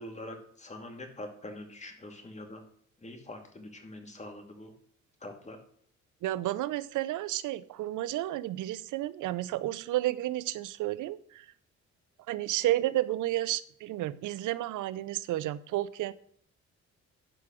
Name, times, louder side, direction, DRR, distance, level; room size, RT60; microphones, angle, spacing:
voice 1, 0.0-2.6 3.0-4.7 5.2-5.6, left 1 dB, 25° left, 3 dB, 2.5 m, -44 dB
voice 2, 6.2-11.5 12.3-16.1, right 15 dB, 80° right, 17 dB, 0.7 m, -31 dB
11.5 x 4.9 x 6.1 m, 0.64 s
cardioid pair, 90°, 30 cm